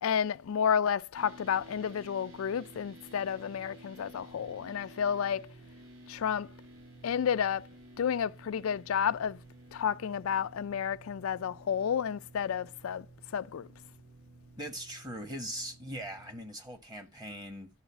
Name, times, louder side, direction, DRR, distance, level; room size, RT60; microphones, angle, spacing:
voice 1, 0.0-5.5 6.1-6.5 7.0-7.7 8.0-9.4 9.7-13.1 13.3-13.7, left 8 dB, 85° left, 0.4 m, -31 dB
sound 1, 1.2-16.5, right 2 dB, 80° right, 1.6 m, -53 dB
voice 2, 14.6-17.7, right 1 dB, 20° right, 1.3 m, -40 dB
11.0 x 4.0 x 7.1 m
head